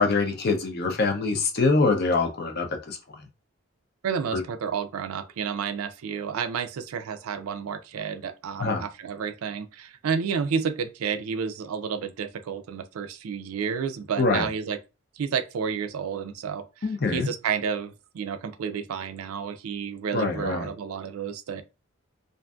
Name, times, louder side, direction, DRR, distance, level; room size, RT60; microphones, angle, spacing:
voice 1, 0.0-3.0 4.3-4.4 8.6-8.8 14.2-14.5 16.8-17.3 20.1-20.7, left 3 dB, 50° left, 0.5 m, -24 dB
voice 2, 4.0-14.8 15.2-16.6 17.1-21.6, right 6 dB, 85° right, 0.4 m, -31 dB
2.5 x 2.5 x 2.3 m
head